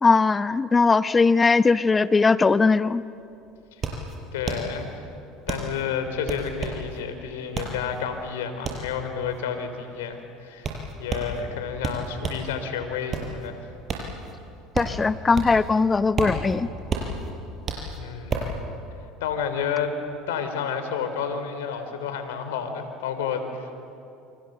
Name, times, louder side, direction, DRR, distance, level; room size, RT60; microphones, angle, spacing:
voice 1, 0.0-3.0 14.8-16.7, left 4 dB, 20° left, 14 dB, 0.8 m, -20 dB
sound 1, 2.9-3.0 3.2-12.5 12.9-15.7 16.0-18.6, right 4 dB, 35° right, 6.8 m, -31 dB
voice 2, 4.3-5.0 5.5-10.7 11.0-13.7 18.0-18.5 19.2-19.9 20.3-23.7, left 7 dB, 90° left, 8 dB, 3.5 m, -30 dB
29.5 x 25.0 x 8.0 m, 2.6 s
supercardioid pair, 95°, 0 cm